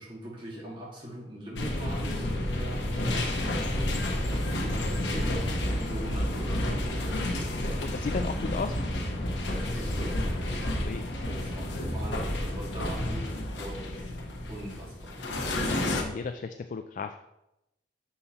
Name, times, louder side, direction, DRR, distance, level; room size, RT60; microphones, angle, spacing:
voice 1, 0.0-7.7 9.5-10.4 11.2-14.2 14.5-15.2, equal, 30° right, -4 dB, 2.2 m, -42 dB
sound 1, 1.6-16.0, left 1 dB, 80° left, 1.1 m, -30 dB
voice 2, 7.8-8.8 10.8-11.4 16.0-17.2, left 4 dB, 45° left, 8 dB, 0.3 m, -35 dB
6.9 x 5.5 x 4.2 m, 0.88 s
head